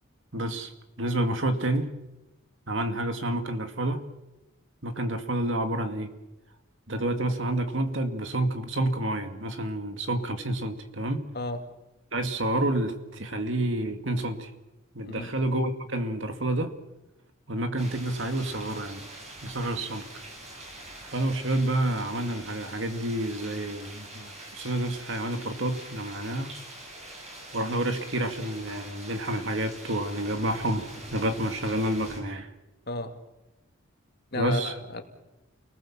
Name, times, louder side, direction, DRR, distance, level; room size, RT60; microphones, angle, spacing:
voice 1, 0.3-0.7 1.0-1.9 2.7-4.0 4.8-6.1 6.9-11.3 12.1-14.5 14.9-16.7 17.5-19.0 19.4-20.0 21.1-26.5 27.5-32.5 34.4-34.7, right 1 dB, 65° right, 7 dB, 2.3 m, -29 dB
sound 1, 17.8-32.2, right 1 dB, 30° right, 7.1 m, -44 dB
voice 2, 34.3-35.0, left 2 dB, 50° left, 5 dB, 2.4 m, -33 dB
29.5 x 19.5 x 7.4 m, 0.98 s
head